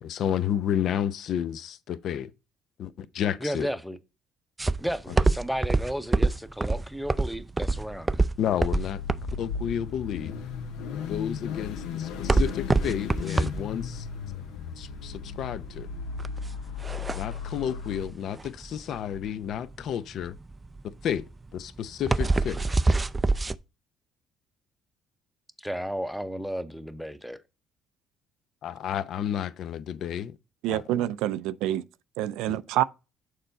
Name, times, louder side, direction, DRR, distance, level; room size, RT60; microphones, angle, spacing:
voice 1, 0.0-2.3 2.8-3.7 8.4-9.0 9.4-10.3 11.1-14.1 14.8-15.9 17.2-20.4 21.0-21.3 21.5-22.6 28.6-30.4 30.7-30.8 32.5-32.6, left 9 dB, 60° left, 0.6 m, -31 dB
voice 2, 3.4-4.0 4.8-8.3 25.6-27.4, equal, ahead, 0.7 m, -33 dB
sound 1, 4.6-23.6, right 3 dB, 15° right, 0.4 m, -26 dB
Car / Idling / Accelerating revving vroom, 8.6-18.0, left 7 dB, 85° left, 0.9 m, -36 dB
voice 3, 30.6-31.8 32.2-32.8, right 13 dB, 85° right, 0.4 m, -27 dB
6.7 x 4.4 x 3.9 m
cardioid pair, 105°, 0 cm